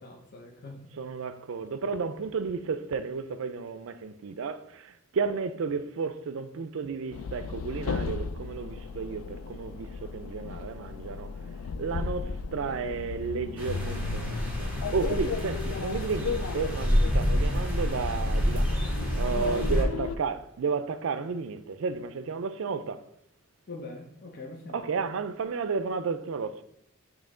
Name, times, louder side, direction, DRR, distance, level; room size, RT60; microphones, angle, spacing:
voice 1, 0.0-0.8 19.3-19.9 23.7-24.8, left 2 dB, 50° left, 0.7 m, -40 dB
voice 2, 0.9-11.3 11.8-18.7 19.2-23.0 24.7-26.6, right 5 dB, 65° right, 0.4 m, -32 dB
sound 1, 7.1-20.2, left 4 dB, 85° left, 0.4 m, -35 dB
sound 2, 13.6-19.8, equal, 10° right, 1.6 m, -28 dB
8.4 x 3.1 x 3.7 m
head